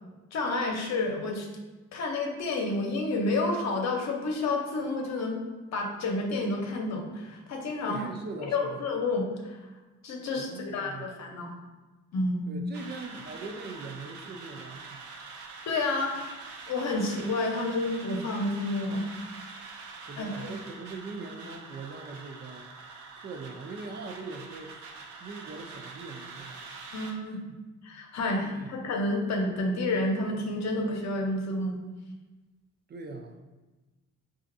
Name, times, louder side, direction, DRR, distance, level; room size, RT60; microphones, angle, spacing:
voice 1, 0.3-1.5 1.9-5.4 5.7-8.1 8.5-9.6 10.0-11.5 12.1-12.5 15.7-16.1 16.7-19.1 20.2-20.5 26.9-27.4 27.8-31.8, left 2 dB, 65° left, 1 dB, 0.8 m, -30 dB
voice 2, 7.9-8.8 10.4-11.1 12.5-15.0 20.1-22.7 23.2-24.8 25.2-26.6 27.2-27.4 28.4-28.7 32.9-33.4, right 3 dB, 35° right, 4 dB, 0.4 m, -41 dB
sound 1, 12.7-27.1, right 4 dB, 75° right, 0.7 m, -45 dB
5.0 x 2.4 x 2.6 m, 1.2 s
cardioid pair, 90°, 30 cm